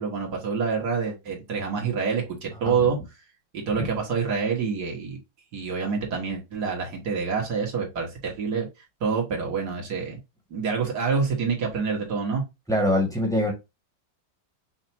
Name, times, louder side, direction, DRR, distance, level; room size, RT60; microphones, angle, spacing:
voice 1, 0.0-3.0 3.5-5.2 5.5-8.7 9.0-10.2 10.5-12.4, right 5 dB, 60° right, 2.0 m, -27 dB
voice 2, 12.7-13.5, left 1 dB, ahead, 1.3 m, -23 dB
5.7 x 2.6 x 2.7 m
omnidirectional pair, 2.0 m